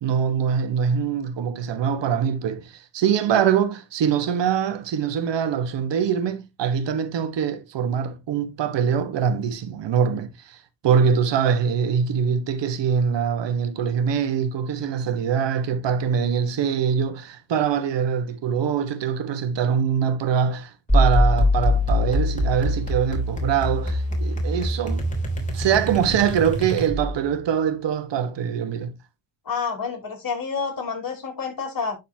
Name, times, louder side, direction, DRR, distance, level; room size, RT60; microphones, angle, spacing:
voice 1, 0.0-25.1 25.5-28.9, right 7 dB, 70° right, 1.4 m, -23 dB
sound 1, 20.9-27.2, left 1 dB, 15° left, 3.1 m, -23 dB
voice 2, 29.5-32.0, left 5 dB, 50° left, 3.9 m, -29 dB
11.5 x 4.1 x 2.8 m
cardioid pair, 95°, 45 cm